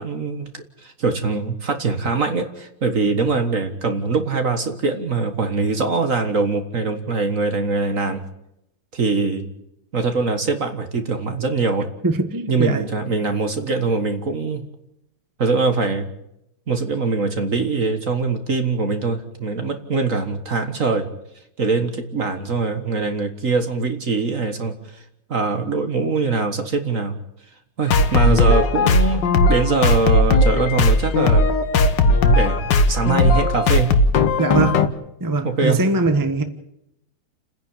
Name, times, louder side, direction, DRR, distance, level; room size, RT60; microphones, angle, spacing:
voice 1, 0.0-8.2 8.9-9.5 9.9-11.9 12.5-14.7 15.4-16.1 16.7-21.1 21.6-25.0 25.3-27.2 27.8-29.2 29.5-31.5 32.0-33.9 35.4-35.8, right 4 dB, 45° right, 7 dB, 1.8 m, -22 dB
voice 2, 12.0-12.9 34.4-34.8 35.2-36.4, right 3 dB, 10° right, 7 dB, 1.2 m, -21 dB
Mix Down Intro, 27.9-34.9, left 2 dB, 65° left, 1.7 m, -17 dB
29.5 x 10.5 x 8.8 m, 0.82 s
omnidirectional pair, 2.2 m